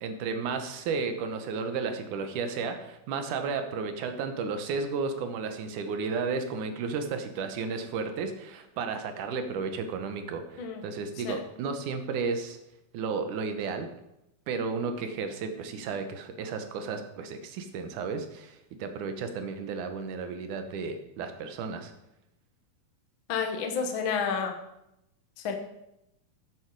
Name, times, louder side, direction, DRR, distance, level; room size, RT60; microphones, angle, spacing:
voice 1, 0.0-12.6 12.9-13.9 14.5-21.9, right 5 dB, 70° right, 7 dB, 2.5 m, -33 dB
voice 2, 23.3-24.5 25.4-25.5, left 6 dB, 60° left, 4 dB, 1.4 m, -30 dB
13.5 x 8.0 x 4.7 m, 0.85 s
omnidirectional pair, 3.9 m